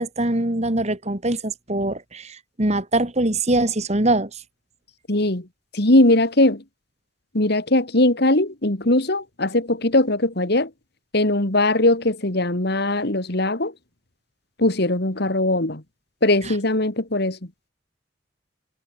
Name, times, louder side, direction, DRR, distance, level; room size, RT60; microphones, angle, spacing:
voice 1, 0.0-4.4 16.4-16.5, right 2 dB, 35° right, 2.7 m, -23 dB
voice 2, 5.1-5.5 5.7-6.6 7.3-10.7 11.1-13.7 14.6-15.8 16.2-17.4, left 1 dB, 55° left, 2.5 m, -20 dB
head